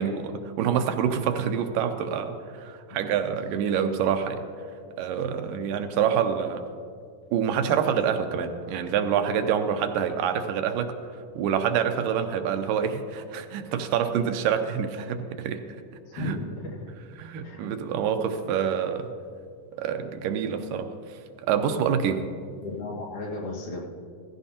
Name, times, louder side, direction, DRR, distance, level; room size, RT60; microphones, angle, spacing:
voice 1, 0.0-4.4 5.0-6.7 7.3-10.9 11.4-15.6 16.2-16.4 17.2-19.1 19.8-20.9 21.5-22.3, right 8 dB, 80° right, 7 dB, 2.3 m, -26 dB
voice 2, 16.1-16.9 17.4-17.6 22.6-23.8, left 2 dB, 70° left, -4 dB, 3.2 m, -34 dB
16.0 x 16.0 x 2.8 m, 2.2 s
omnidirectional pair, 3.9 m